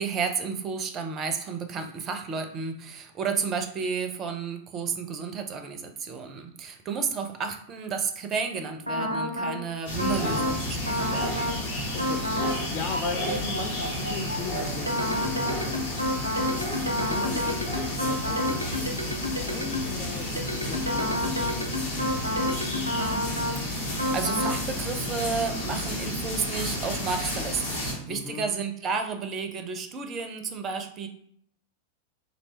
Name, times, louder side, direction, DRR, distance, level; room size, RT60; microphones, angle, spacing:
voice 1, 0.0-11.5 23.5-31.1, right 5 dB, 30° right, 6 dB, 0.4 m, -32 dB
sound 1, 8.9-9.6 10.0-10.6 10.9-11.6 12.0-12.6 12.9-20.0 20.4-23.6 24.0-24.6, left 1 dB, 90° right, 0.5 m, -29 dB
sound 2, 9.9-27.9, left 1 dB, 60° left, 1.4 m, -32 dB
voice 2, 10.2-10.5 11.9-22.6 28.1-28.5, left 6 dB, 35° left, 3 dB, 0.4 m, -39 dB
3.1 x 2.6 x 3.2 m, 0.64 s
figure-of-eight pair, 90°, 0 cm